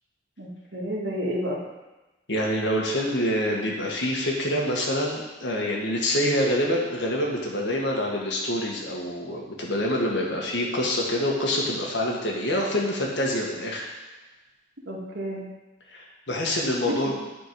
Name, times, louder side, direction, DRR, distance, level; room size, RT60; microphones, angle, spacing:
voice 1, 0.4-1.6 14.9-15.5 16.8-17.1, equal, 80° right, -3 dB, 1.9 m, -30 dB
voice 2, 2.3-13.9 15.9-17.1, left 1 dB, 75° left, -1 dB, 1.6 m, -26 dB
10.5 x 4.4 x 4.7 m, 1.1 s
head